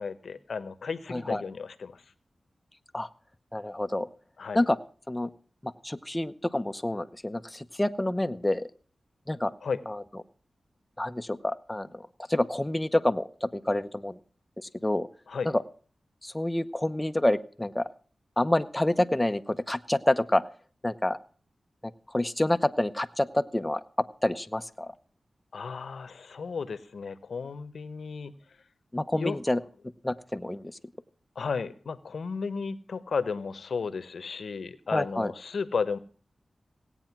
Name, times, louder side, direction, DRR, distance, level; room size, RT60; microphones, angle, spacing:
voice 1, 0.0-2.0 4.4-4.6 9.6-9.8 15.3-15.5 25.5-28.3 29.2-29.4 31.3-36.0, left 5 dB, 80° left, 14 dB, 1.0 m, -33 dB
voice 2, 1.1-1.4 2.9-3.1 3.5-4.1 4.5-4.8 5.1-5.3 5.6-8.7 9.3-9.5 9.9-10.0 11.0-12.0 12.3-14.2 14.8-15.1 15.4-15.6 16.2-17.9 18.4-20.4 20.8-21.2 22.1-23.8 24.2-24.9 28.9-29.6 30.0-30.7 34.9-35.3, left 1 dB, 15° left, 10 dB, 0.8 m, -28 dB
17.5 x 9.0 x 5.9 m, 0.43 s
wide cardioid pair, 85°, 0 cm